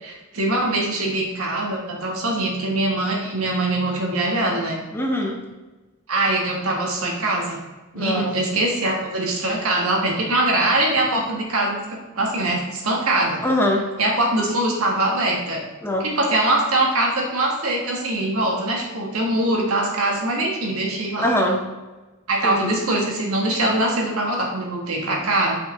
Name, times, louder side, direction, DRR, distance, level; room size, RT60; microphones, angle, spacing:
voice 1, 0.0-4.8 6.1-7.6 7.9-13.4 14.0-15.6 16.0-21.3 22.3-25.6, right 2 dB, 75° right, -1 dB, 1.5 m, -22 dB
voice 2, 4.9-5.4 7.9-8.3 13.4-13.8 15.8-16.1 21.2-21.6 22.4-22.7, left 1 dB, 10° left, 1 dB, 0.7 m, -22 dB
5.8 x 5.1 x 3.7 m, 1.2 s
head